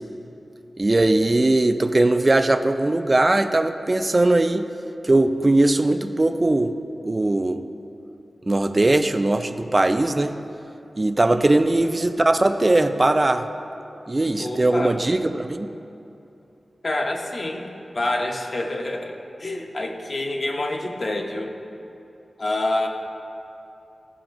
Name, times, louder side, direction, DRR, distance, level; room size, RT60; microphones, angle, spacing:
voice 1, 0.8-4.7 5.0-6.7 7.0-7.6 8.5-10.3 11.0-13.5 14.1-15.7, right 2 dB, 30° right, 8 dB, 0.3 m, -20 dB
voice 2, 14.4-15.0 16.8-17.6 17.9-19.1 19.4-21.5 22.4-22.9, left 2 dB, 50° left, 2 dB, 0.7 m, -27 dB
13.5 x 4.9 x 2.6 m, 2.8 s
wide cardioid pair, 100°, 0 cm